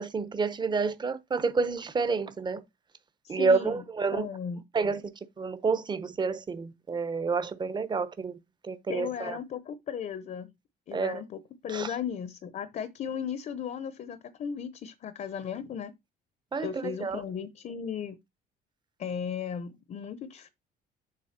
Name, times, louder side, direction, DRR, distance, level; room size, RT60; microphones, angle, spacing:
voice 1, 0.0-2.6 3.3-4.3 4.7-5.0 5.4-8.3 8.6-9.4 10.9-11.2 11.7-11.9 16.5-17.2, right 4 dB, 25° right, 1.0 m, -29 dB
voice 2, 3.2-3.8 4.1-4.6 8.9-10.5 10.9-15.9 16.6-18.2 19.0-20.5, left 8 dB, 50° left, 0.9 m, -36 dB
7.6 x 3.4 x 5.9 m
cardioid pair, 110°, 17 cm